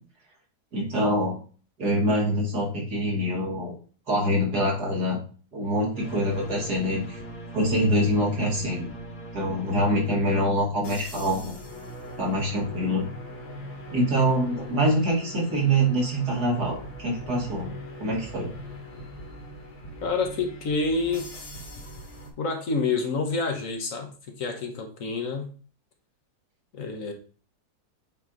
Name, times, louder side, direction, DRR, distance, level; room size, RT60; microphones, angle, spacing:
voice 1, 0.7-1.4 1.8-3.8 4.1-5.2 5.5-7.2 7.5-8.9 9.3-11.5 12.2-13.1 13.9-17.7 18.0-18.5, equal, 75° right, -3 dB, 2.7 m, -25 dB
sound 1, 5.9-22.3, equal, 40° left, 1.6 m, -41 dB
voice 2, 20.0-21.3 22.4-24.1 24.4-25.5 26.7-27.1, left 4 dB, 60° left, 3 dB, 1.3 m, -28 dB
8.2 x 3.0 x 3.8 m, 0.40 s
omnidirectional pair, 1.7 m